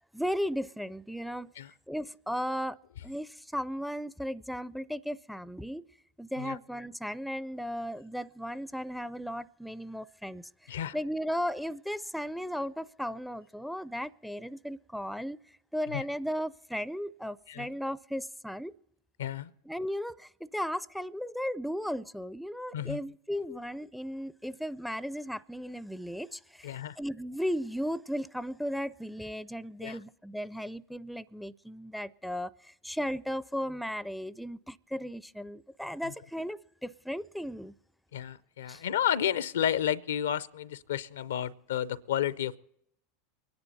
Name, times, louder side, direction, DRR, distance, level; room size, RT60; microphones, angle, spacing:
voice 1, 0.1-1.5 1.9-2.8 3.0-5.8 6.2-15.4 15.7-18.7 19.7-37.7 38.7-38.8, equal, ahead, 0.4 m, -36 dB
voice 2, 19.2-19.5 22.7-23.0 23.5-23.6 26.6-27.0 29.8-30.0 36.0-36.1 38.1-42.6, left 10 dB, 80° left, 0.5 m, -31 dB
24.0 x 10.5 x 4.1 m
hypercardioid pair, 90°, 0 cm